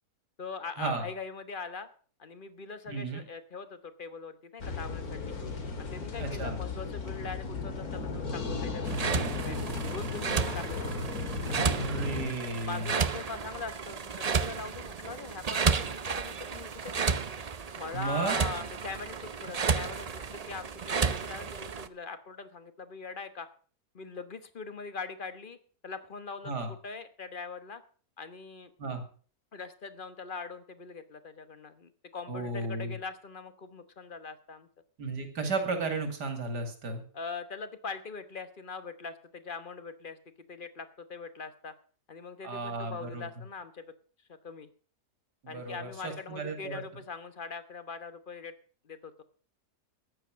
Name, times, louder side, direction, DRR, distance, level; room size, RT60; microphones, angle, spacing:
voice 1, 0.4-1.9 2.2-5.4 5.8-11.0 11.5-11.9 12.6-17.2 17.8-23.5 23.9-25.6 25.8-27.8 28.2-28.7 29.5-34.7 37.1-40.2 40.5-41.7 42.1-43.8 44.4-44.7 45.5-48.5 48.8-49.2, left 4 dB, 35° left, 11 dB, 1.2 m, -42 dB
voice 2, 2.9-3.2 6.2-6.6 11.7-12.9 17.9-18.4 26.4-26.7 28.8-29.0 32.3-32.9 35.0-37.0 42.4-43.3 45.4-46.8, right 3 dB, 90° right, 6 dB, 3.1 m, -34 dB
sound 1, 4.6-12.3, left 3 dB, 65° left, 2.5 m, -35 dB
sound 2, 8.8-21.9, right 5 dB, 55° right, 0.4 m, -32 dB
14.0 x 9.9 x 6.3 m, 0.42 s
omnidirectional pair, 1.7 m